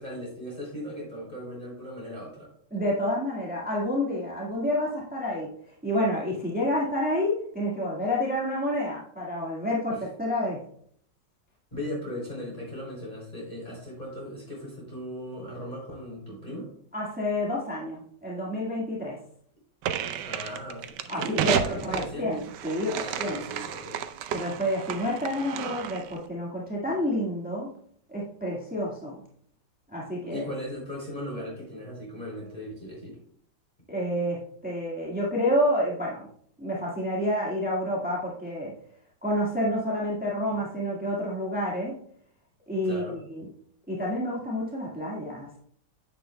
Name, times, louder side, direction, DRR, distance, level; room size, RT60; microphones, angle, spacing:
voice 1, 0.0-2.5 9.9-10.0 11.7-16.7 20.2-22.4 23.0-24.0 26.9-27.0 30.3-33.2 40.4-40.6 42.8-43.2, equal, 25° left, -4 dB, 3.2 m, -38 dB
voice 2, 2.7-5.5 5.8-10.6 16.9-19.2 21.1-23.4 24.3-27.7 28.1-29.2 29.9-30.5 33.9-36.3 36.6-38.7 39.2-42.0 42.7-43.5 43.9-45.6, left 1 dB, 5° right, -4 dB, 1.5 m, -29 dB
sound 1, 19.8-26.2, right 9 dB, 90° right, 1.3 m, -32 dB
9.9 x 8.2 x 2.2 m, 0.63 s
omnidirectional pair, 1.8 m